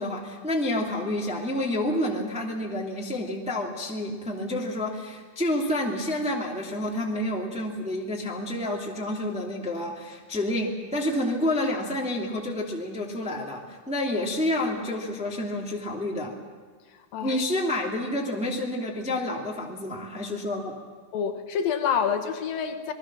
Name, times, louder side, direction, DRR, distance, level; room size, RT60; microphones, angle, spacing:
voice 1, 0.0-16.3 17.2-20.7, left 1 dB, ahead, -1 dB, 1.8 m, -29 dB
voice 2, 17.1-17.4 21.1-22.9, left 7 dB, 75° left, 7 dB, 2.9 m, -27 dB
27.5 x 20.0 x 6.2 m, 1.5 s
omnidirectional pair, 4.2 m